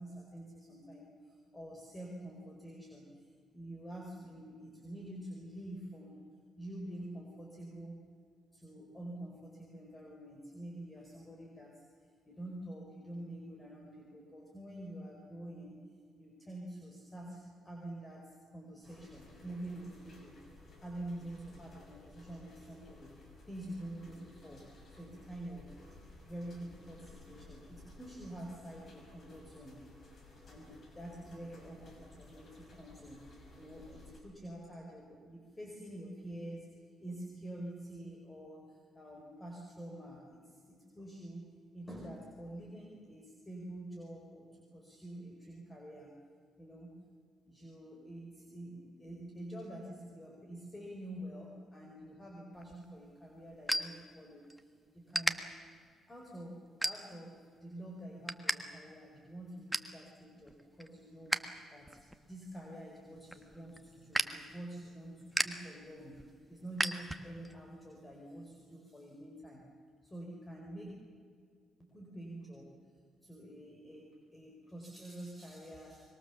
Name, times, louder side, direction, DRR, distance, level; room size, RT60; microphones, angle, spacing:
voice 1, 0.0-3.3 3.5-6.2 6.6-8.0 8.5-11.8 12.3-15.8 16.2-20.4 20.8-23.1 23.5-25.8 26.2-29.8 30.4-33.2 33.5-41.5 41.7-46.1 46.6-47.0 47.4-55.4 56.1-61.4 61.7-66.2 66.5-69.6 70.0-70.9 71.8-72.7 73.2-76.0, right 1 dB, 20° left, 0 dB, 4.8 m, -47 dB
sound 1, 18.8-34.2, left 2 dB, 50° left, 6.4 m, -56 dB
sound 2, 52.5-54.6 55.1-55.3 55.9-56.1 56.8-57.4 57.8-58.6 58.9-59.0 59.3-60.0 60.4-61.5 61.8-67.5, right 1 dB, ahead, 1.5 m, -36 dB
25.0 x 23.0 x 7.2 m, 2.1 s
cardioid pair, 90°, 0 cm